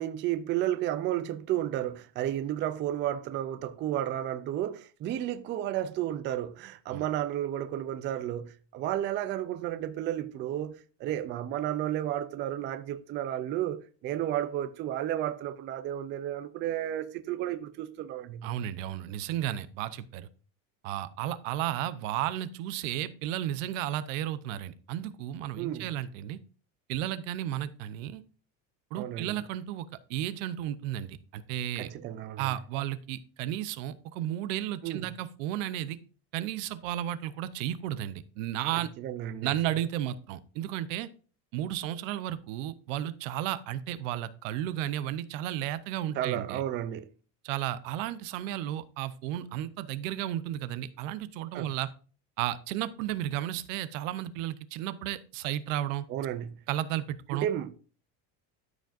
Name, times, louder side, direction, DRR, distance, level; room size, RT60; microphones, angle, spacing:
voice 1, 0.0-18.5 25.6-25.9 28.9-29.4 31.8-32.5 34.8-35.0 38.7-39.6 46.1-47.1 51.5-51.7 56.1-56.6 57.3-57.8, right 12 dB, 30° right, 0.4 m, -32 dB
voice 2, 18.4-20.3 20.8-26.4 26.9-28.2 28.9-31.9 32.4-36.0 36.3-38.9 39.4-41.1 41.5-46.6 47.4-51.9 52.4-56.0 56.7-57.5, right 12 dB, 85° right, 0.8 m, -33 dB
13.0 x 5.1 x 2.6 m
cardioid pair, 160°, 37 cm